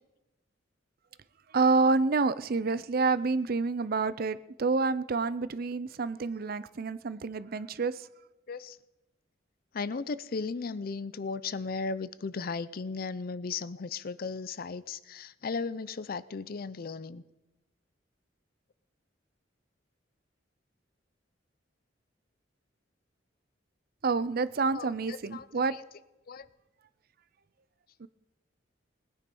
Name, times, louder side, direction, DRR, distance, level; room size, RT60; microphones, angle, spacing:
voice 1, 1.5-8.0 24.0-25.7 28.0-28.1, right 4 dB, 55° right, 16 dB, 0.5 m, -28 dB
voice 2, 9.7-17.2 24.7-25.8 26.3-26.5, left 4 dB, 55° left, 17 dB, 0.5 m, -36 dB
20.0 x 9.8 x 5.4 m, 0.99 s
head